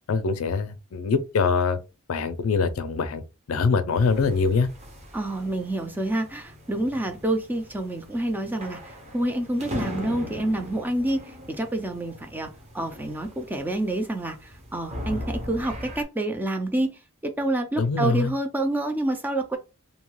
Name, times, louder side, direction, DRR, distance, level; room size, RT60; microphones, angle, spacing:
voice 1, 0.1-1.8 2.1-3.2 3.5-4.7 17.8-18.3, left 4 dB, 80° left, 0.4 m, -23 dB
sound 1, 3.9-16.0, equal, 30° right, 0.7 m, -39 dB
voice 2, 5.1-19.6, right 1 dB, 10° right, 0.3 m, -28 dB
2.7 x 2.2 x 3.0 m
head